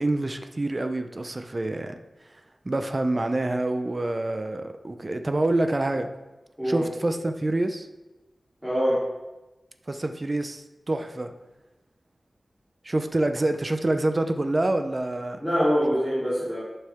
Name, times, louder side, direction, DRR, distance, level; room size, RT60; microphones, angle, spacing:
voice 1, 0.0-2.0 2.6-6.1 6.6-7.9 9.9-11.3 12.8-15.4, right 2 dB, 35° right, 7 dB, 0.8 m, -26 dB
voice 2, 8.6-9.0 15.4-16.6, equal, 5° right, -10 dB, 3.5 m, -24 dB
11.0 x 6.7 x 3.7 m, 1.1 s
wide cardioid pair, 80°, 0 cm